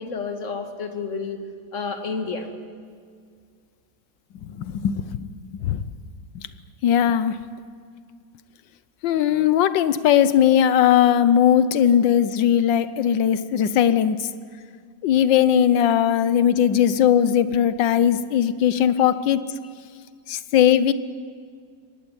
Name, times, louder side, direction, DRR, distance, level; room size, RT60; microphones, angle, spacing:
voice 1, 0.0-1.4 1.7-2.5, left 4 dB, 45° left, 6 dB, 2.1 m, -30 dB
voice 2, 4.4-5.8 6.4-6.5 6.8-7.4 9.0-14.3 15.0-19.4 20.3-20.9, left 9 dB, 85° left, 14 dB, 1.6 m, -19 dB
23.0 x 18.0 x 9.9 m, 2.1 s
omnidirectional pair, 2.0 m